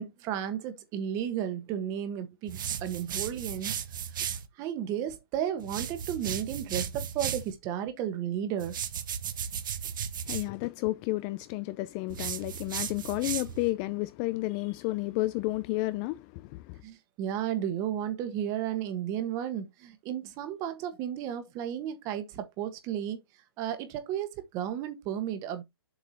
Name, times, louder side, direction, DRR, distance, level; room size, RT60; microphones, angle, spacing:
voice 1, 0.0-3.7 4.6-8.8 16.8-23.2 23.6-25.6, right 10 dB, 25° right, 1.4 m, -33 dB
sound 1, 2.5-4.5 5.6-7.5 8.6-10.5 12.1-13.7, right 8 dB, 55° right, 1.1 m, -35 dB
voice 2, 10.3-16.8, left 19 dB, 25° left, 0.4 m, -31 dB
7.4 x 4.6 x 4.3 m
hypercardioid pair, 140°, 13 cm